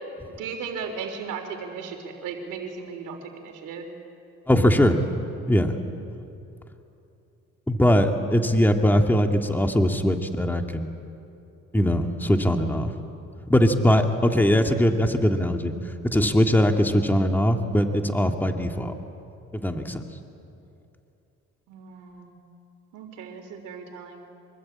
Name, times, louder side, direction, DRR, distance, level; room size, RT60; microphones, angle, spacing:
voice 1, 0.4-3.9 21.7-22.3 22.9-24.2, right 5 dB, 90° right, 5 dB, 3.5 m, -36 dB
voice 2, 4.5-5.0 5.5-5.8 7.7-10.9 11.7-12.9 13.5-15.7 16.1-18.9 19.5-20.0, equal, 5° left, 4 dB, 2.0 m, -21 dB
25.5 x 23.5 x 8.7 m, 2.8 s
cardioid pair, 90°, 30 cm